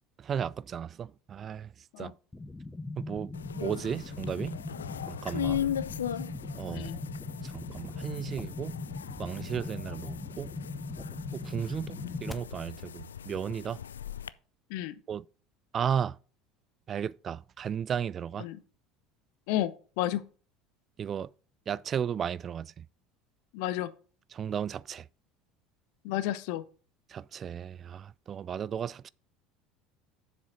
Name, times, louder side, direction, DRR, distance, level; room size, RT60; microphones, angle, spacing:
voice 1, 0.2-1.7 2.0-2.1 3.0-4.6 5.1-5.7 6.5-6.9 7.4-8.7 9.2-10.5 11.3-13.8 15.1-15.2 15.7-16.2 16.9-18.5 21.0-21.3 21.7-22.9 24.3-25.1 27.1-29.1, right 8 dB, 35° right, 0.3 m, -34 dB
sound 1, 2.3-12.3, left 2 dB, 10° left, 0.9 m, -40 dB
sound 2, 3.3-14.3, left 9 dB, 75° left, 0.3 m, -38 dB
voice 2, 6.7-7.0 12.0-12.2 14.7-15.0 18.4-18.6 19.5-20.2 23.5-23.9 26.0-26.6, left 13 dB, 60° left, 0.7 m, -32 dB
7.4 x 7.2 x 3.8 m
figure-of-eight pair, 65°, 0 cm